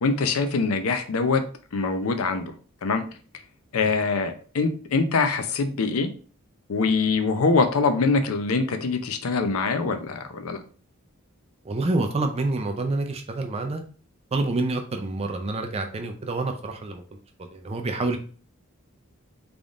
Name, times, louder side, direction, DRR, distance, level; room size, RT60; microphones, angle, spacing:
voice 1, 0.0-1.4 1.7-2.5 2.8-3.0 3.7-6.1 6.7-10.6, left 4 dB, 90° left, 8 dB, 0.6 m, -23 dB
voice 2, 11.6-13.8 14.3-17.0 17.5-18.2, right 2 dB, 30° right, 5 dB, 0.4 m, -27 dB
3.8 x 3.5 x 2.4 m, 0.40 s
head